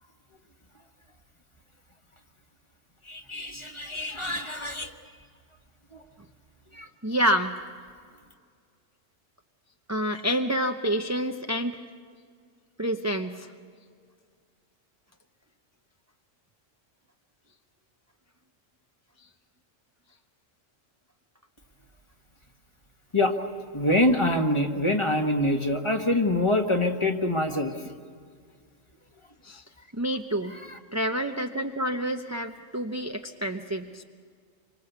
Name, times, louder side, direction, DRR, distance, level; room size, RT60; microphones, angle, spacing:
voice 1, 3.0-4.9 5.9-6.0 6.7-6.9 23.1-23.4 23.7-27.9 30.5-30.8, left 1 dB, 25° left, 5 dB, 1.5 m, -25 dB
voice 2, 7.0-7.5 9.9-11.8 12.8-13.5 29.4-29.6 29.9-30.6 30.9-34.0, equal, 15° right, 5 dB, 0.7 m, -28 dB
26.5 x 25.0 x 8.1 m, 2.1 s
omnidirectional pair, 1.3 m